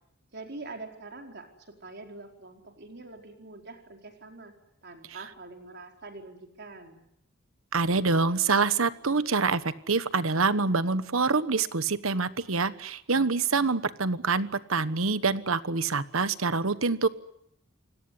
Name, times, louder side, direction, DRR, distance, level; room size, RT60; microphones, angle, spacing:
voice 1, 0.3-1.5 1.8-4.5 4.8-7.0, right 3 dB, 55° right, 3 dB, 4.6 m, -44 dB
voice 2, 7.7-17.1, right 4 dB, 85° right, 14 dB, 1.2 m, -26 dB
28.5 x 18.0 x 9.8 m, 0.77 s
head